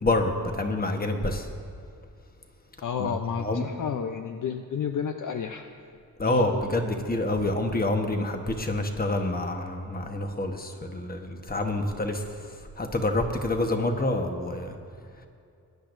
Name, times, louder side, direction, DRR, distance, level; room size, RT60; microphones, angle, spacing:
voice 1, 0.0-1.5 3.0-3.6 6.2-12.2 12.8-14.7, left 2 dB, 25° left, 4 dB, 1.2 m, -27 dB
voice 2, 2.8-5.7 6.3-6.4, left 7 dB, 55° left, 5 dB, 0.6 m, -31 dB
21.5 x 10.0 x 2.6 m, 2.4 s
cardioid pair, 100°, 38 cm